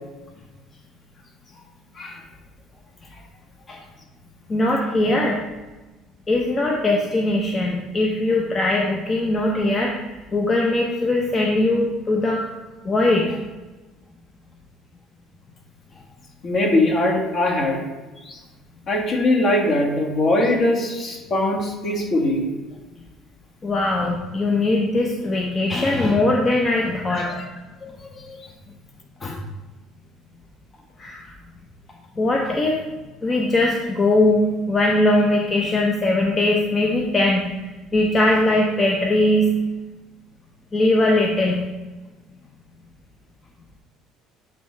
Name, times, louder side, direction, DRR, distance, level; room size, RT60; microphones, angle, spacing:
voice 1, 4.5-5.4 6.3-12.5 12.8-13.4 23.6-27.3 29.2-29.4 31.0-31.2 32.2-32.8 33.2-37.4 37.9-39.5 40.7-41.6, left 2 dB, 25° left, -1 dB, 0.7 m, -20 dB
voice 2, 16.4-17.8 18.2-18.4 18.9-22.4 27.3-27.4 27.8-28.4, left 1 dB, 50° left, -1 dB, 1.7 m, -21 dB
8.3 x 3.2 x 4.6 m, 1.2 s
cardioid pair, 105°, 0 cm